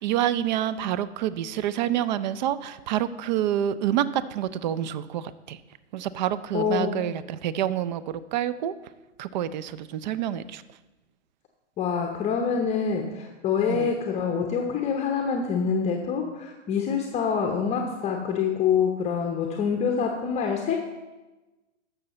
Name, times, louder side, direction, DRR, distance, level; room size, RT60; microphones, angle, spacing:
voice 1, 0.0-5.6 5.9-8.7 9.2-10.6 13.7-13.9, right 11 dB, 40° right, 16 dB, 0.4 m, -27 dB
voice 2, 6.5-6.9 11.8-20.8, left 6 dB, 15° left, 2 dB, 0.7 m, -26 dB
11.0 x 6.9 x 4.1 m, 1.1 s
hypercardioid pair, 120°, 37 cm